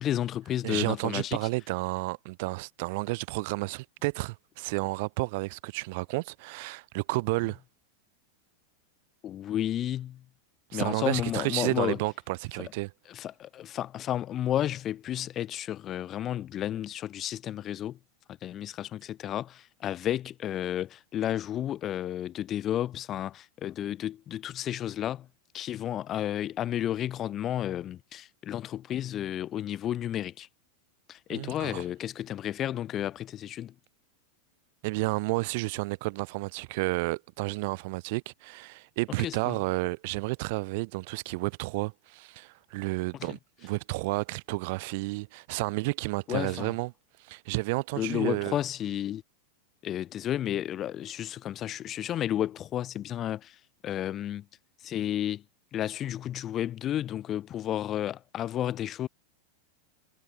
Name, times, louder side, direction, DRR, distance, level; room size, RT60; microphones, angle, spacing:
voice 1, 0.0-1.4 9.2-10.2 10.7-12.0 12.6-12.7 13.1-18.0 18.4-25.3 25.5-30.5 31.1-33.7 39.2-39.6 43.2-43.4 46.3-46.7 48.0-49.2 49.8-54.4 54.8-55.4 55.7-59.1, left 11 dB, 30° left, 6.7 m, -32 dB
voice 2, 0.6-7.6 10.7-12.9 31.3-31.8 34.8-46.9 47.2-48.6, right 25 dB, 50° right, 4.0 m, -31 dB
figure-of-eight pair, 90°, 0 cm